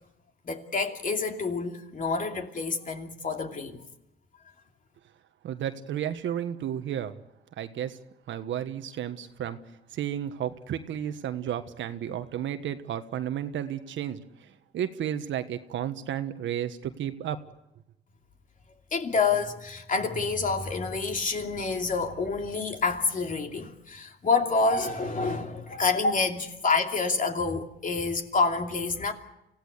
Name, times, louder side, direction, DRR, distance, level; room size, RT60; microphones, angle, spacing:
voice 1, 0.4-3.8 18.9-29.1, left 4 dB, 40° left, 2.8 m, -28 dB
voice 2, 5.4-7.2 7.6-8.0 8.3-9.6 9.9-17.4, right 10 dB, 75° right, 1.4 m, -32 dB
25.5 x 16.5 x 8.2 m
cardioid pair, 90°, 20 cm